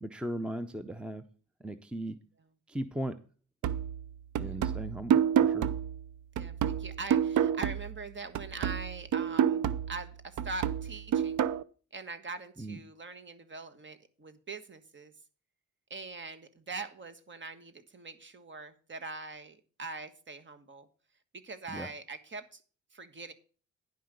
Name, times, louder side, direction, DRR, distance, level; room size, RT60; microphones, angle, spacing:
voice 1, 0.0-1.2 1.6-2.2 2.7-3.2 4.4-5.7 12.6-12.8 21.7-21.9, right 1 dB, 5° right, 12 dB, 0.7 m, -37 dB
sound 1, 3.6-8.1 8.3-11.6, right 9 dB, 70° right, 0.6 m, -29 dB
voice 2, 6.4-11.4 11.9-15.1 15.9-20.9 21.3-22.6 22.9-23.3, right 3 dB, 40° right, 10 dB, 1.5 m, -43 dB
10.5 x 5.6 x 6.6 m, 0.39 s
cardioid pair, 85°, 31 cm